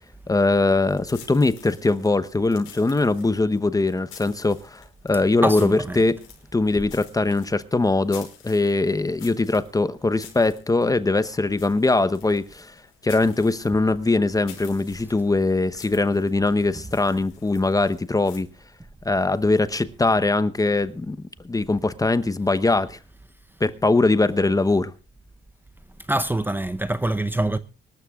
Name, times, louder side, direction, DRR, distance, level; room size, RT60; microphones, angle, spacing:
voice 1, 0.3-6.2 6.5-12.7 13.0-18.5 19.0-21.2 21.4-23.0 23.6-24.9, left 3 dB, 15° left, 0.9 m, -21 dB
sound 1, 0.8-18.4, left 9 dB, 85° left, 5.6 m, -49 dB
voice 2, 5.4-6.0 26.1-27.6, right 1 dB, 10° right, 0.8 m, -24 dB
25.0 x 13.0 x 2.4 m
cardioid pair, 90°, 20 cm